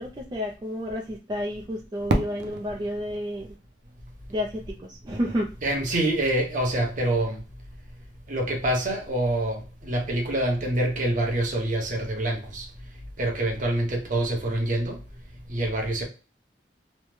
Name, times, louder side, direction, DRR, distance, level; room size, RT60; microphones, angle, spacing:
voice 1, 0.0-3.5 4.3-5.5, equal, 25° right, 0.4 m, -30 dB
Fireworks, 2.1-5.0, right 2 dB, 80° right, 0.5 m, -31 dB
voice 2, 5.6-7.4 8.3-12.7 13.2-15.0 15.5-16.0, right 1 dB, 45° right, 0.9 m, -26 dB
3.1 x 2.0 x 3.1 m
head